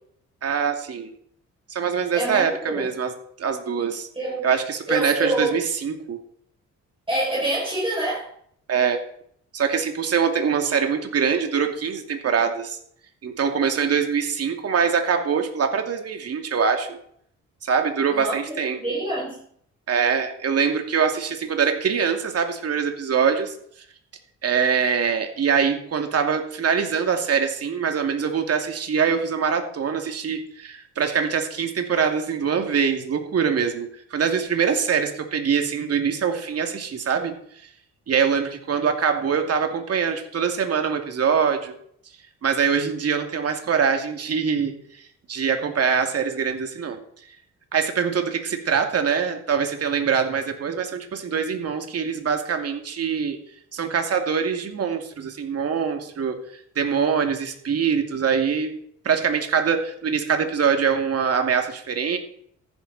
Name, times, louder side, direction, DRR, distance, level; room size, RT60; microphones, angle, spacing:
voice 1, 0.4-1.1 1.7-3.1 3.4-4.1 4.4-6.2 8.7-9.0 9.5-12.8 13.2-17.0 17.6-18.8 19.9-23.5 24.4-37.3 38.1-41.7 42.4-47.0 47.7-53.4 53.7-56.4 56.8-58.7 59.0-62.2, right 6 dB, 55° right, 2.6 m, -23 dB
voice 2, 2.1-2.8 4.1-4.5 4.9-5.6 7.1-8.3 18.1-19.4, right 1 dB, 15° right, 6.3 m, -26 dB
14.5 x 11.5 x 4.2 m
cardioid pair, 90°, 30 cm